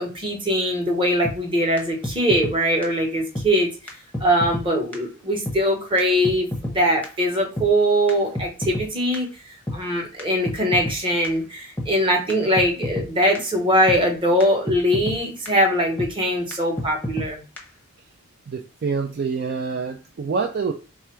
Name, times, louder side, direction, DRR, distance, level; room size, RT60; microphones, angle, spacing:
voice 1, 0.0-3.7 4.2-9.3 9.7-17.4, equal, 25° right, 1 dB, 0.9 m, -21 dB
sound 1, 1.2-1.4 1.8-2.5 2.8-2.9 3.3-3.5 3.9-4.7 4.9-5.0 5.5-5.6 6.0-6.1 6.2-6.8 7.0-7.1 7.6-7.7 8.1-8.9 9.1-9.2 9.7-9.8 10.2-10.3 10.5-11.0 11.2-11.3 11.8-11.9 12.3-12.4 12.6-13.1 13.3-13.4 13.9-14.0 14.4-14.5 14.7-15.2 15.5-15.6 16.0-16.1 16.5-16.6 16.8-17.3 17.6-17.7, left 1 dB, 5° left, 0.7 m, -28 dB
voice 2, 18.5-20.7, right 5 dB, 45° right, 4 dB, 0.3 m, -26 dB
3.3 x 2.4 x 4.4 m, 0.34 s
head